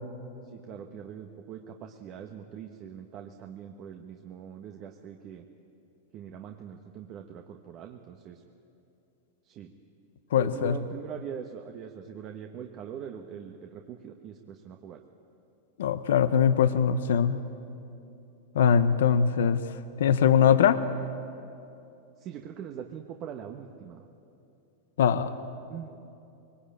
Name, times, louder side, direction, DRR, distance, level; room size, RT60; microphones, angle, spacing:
voice 1, 0.5-5.4 6.1-8.4 9.4-9.7 10.4-15.0 20.4-20.7 22.2-24.0 25.7-26.0, right 8 dB, 40° right, 4 dB, 1.4 m, -42 dB
voice 2, 10.3-10.8 15.8-17.4 18.5-19.6 20.0-20.8 25.0-25.3, left 8 dB, 75° left, 11 dB, 0.8 m, -22 dB
22.5 x 19.5 x 8.9 m, 2.7 s
hypercardioid pair, 110°, 0 cm